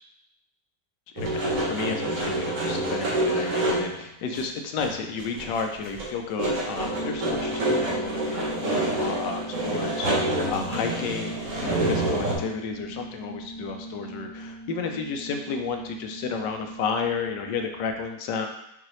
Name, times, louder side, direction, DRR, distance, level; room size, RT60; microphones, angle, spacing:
voice 1, 1.1-18.5, left 5 dB, 75° left, 4 dB, 1.2 m, -32 dB
sound 1, 1.2-4.0 4.3-4.4 4.8-5.6 5.9-12.4, right 1 dB, 50° right, 1.1 m, -27 dB
sound 2, 6.8-17.9, right 1 dB, 40° left, 0.8 m, -40 dB
5.7 x 2.9 x 3.1 m, 0.82 s
omnidirectional pair, 2.0 m